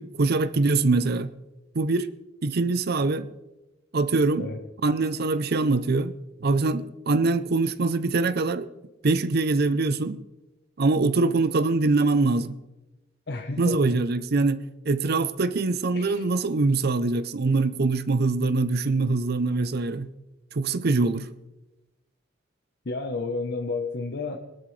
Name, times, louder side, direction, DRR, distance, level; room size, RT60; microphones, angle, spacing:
voice 1, 0.0-1.3 1.7-2.1 2.4-3.3 3.9-4.5 4.8-6.1 6.4-8.7 9.0-10.2 10.8-12.6 13.6-20.1 20.5-21.3, right 3 dB, 55° right, 0.6 m, -23 dB
voice 2, 13.3-14.0 15.9-16.2 22.8-24.4, left 3 dB, 60° left, 1.0 m, -31 dB
21.5 x 12.5 x 3.3 m
head